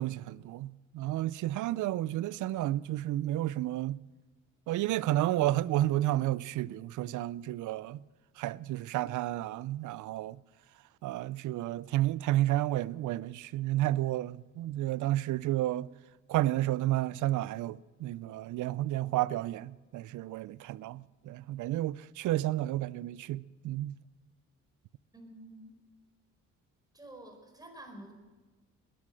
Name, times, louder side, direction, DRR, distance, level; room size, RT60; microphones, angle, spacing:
voice 1, 0.0-4.0 4.7-8.0 8.4-10.4 11.0-15.9 16.3-23.9, right 15 dB, 75° right, 0.5 m, -31 dB
voice 2, 25.1-25.7 26.9-28.1, right 1 dB, 15° right, 4.7 m, -49 dB
20.0 x 11.5 x 6.4 m
cardioid pair, 90°, 30 cm